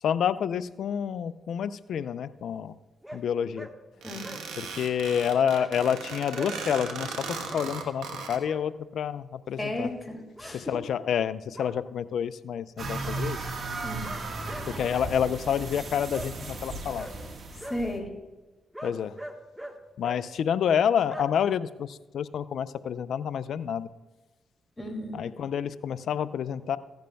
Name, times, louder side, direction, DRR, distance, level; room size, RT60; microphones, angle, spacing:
voice 1, 0.0-2.7 3.1-3.7 4.6-7.2 7.5-9.9 10.5-13.4 14.7-17.1 18.8-19.2 20.0-23.9 25.1-26.8, left 8 dB, 75° left, 15 dB, 0.4 m, -28 dB
sound 1, 3.0-3.2 3.5-3.7 4.0-4.4 5.5-5.7 6.3-6.5 7.5-7.7 8.2-8.6 10.4-10.6 11.5-11.7 13.0-13.2 14.0-15.1 16.1-16.3 16.9-17.1 17.6-17.8 18.7-19.8 20.0-20.2 21.1-21.2, equal, 5° right, 1.3 m, -41 dB
sound 2, 4.0-8.4, right 5 dB, 85° right, 1.1 m, -37 dB
voice 2, 9.6-10.6 13.8-14.1 17.6-18.1 24.8-25.2, left 1 dB, 25° left, 2 dB, 2.4 m, -34 dB
sound 3, 12.8-18.0, right 3 dB, 60° right, 1.5 m, -36 dB
15.5 x 10.5 x 2.3 m, 1.2 s
supercardioid pair, 50°, 0 cm